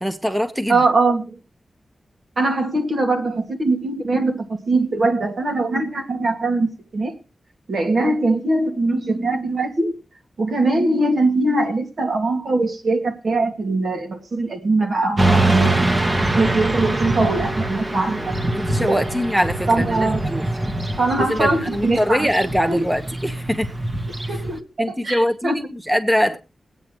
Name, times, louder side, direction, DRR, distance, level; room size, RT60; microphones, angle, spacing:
voice 1, 0.0-0.8 18.2-20.5 21.2-23.7 24.8-26.4, equal, 5° right, 1.1 m, -23 dB
voice 2, 0.7-1.3 2.4-7.2 7.7-10.0 10.4-15.8 16.3-19.0 19.7-20.2 21.0-22.3 22.7-22.8 24.3-25.7, right 2 dB, 70° right, 2.5 m, -21 dB
Motorcycle / Traffic noise roadway noise, 15.2-24.6, right 2 dB, 30° right, 1.5 m, -23 dB
21.5 x 9.0 x 3.1 m
wide cardioid pair, 80°, 0 cm